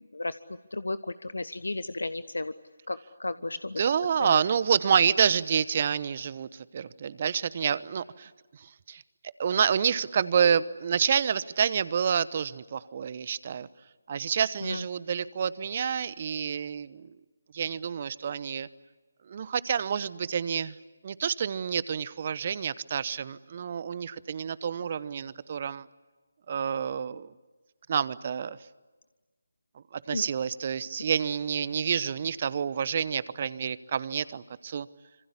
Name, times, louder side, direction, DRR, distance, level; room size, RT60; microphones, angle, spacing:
voice 1, 0.7-2.5 2.9-3.8 4.2-4.4 14.6-14.8 30.1-30.3, left 2 dB, 75° left, 14 dB, 1.0 m, -33 dB
voice 2, 3.8-9.0 9.4-13.7 14.1-17.1 17.5-18.7 19.3-20.7 21.0-25.9 26.5-27.3 27.9-28.6 29.9-34.9, right 7 dB, 40° right, 18 dB, 1.0 m, -28 dB
26.5 x 26.0 x 8.5 m, 1.2 s
figure-of-eight pair, 150°, 0 cm